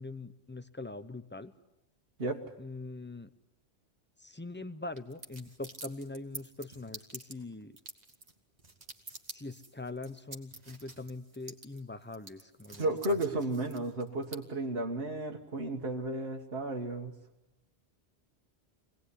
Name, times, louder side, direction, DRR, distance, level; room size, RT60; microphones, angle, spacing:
voice 1, 0.0-1.5 2.6-3.3 4.2-7.7 9.3-13.2, left 2 dB, 10° left, 13 dB, 0.8 m, -42 dB
sound 1, 4.9-14.4, right 2 dB, 40° right, 2.0 m, -48 dB
voice 2, 12.8-17.1, right 1 dB, 60° right, 0 dB, 1.8 m, -33 dB
24.5 x 18.5 x 9.9 m, 0.92 s
omnidirectional pair, 1.1 m